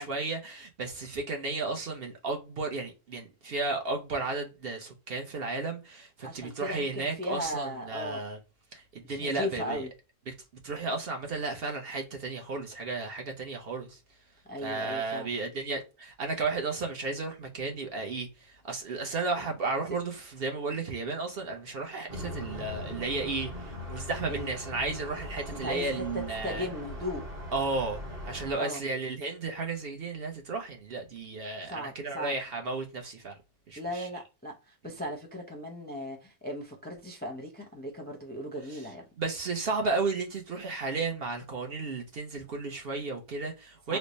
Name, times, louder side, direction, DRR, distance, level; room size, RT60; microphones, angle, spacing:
voice 1, 0.0-8.4 8.7-9.9 10.3-10.4 10.6-14.0 14.6-26.7 27.5-33.4 33.7-34.1 38.7-38.8 39.2-44.0, right 3 dB, 55° right, 0.9 m, -33 dB
voice 2, 6.2-8.2 9.0-9.9 14.5-15.3 24.3-24.5 25.6-27.2 28.5-28.8 31.7-32.3 33.8-39.0 43.9-44.0, left 1 dB, 10° left, 0.5 m, -37 dB
sound 1, 22.1-28.5, left 1 dB, 30° right, 1.0 m, -40 dB
3.3 x 2.1 x 3.8 m
omnidirectional pair, 1.3 m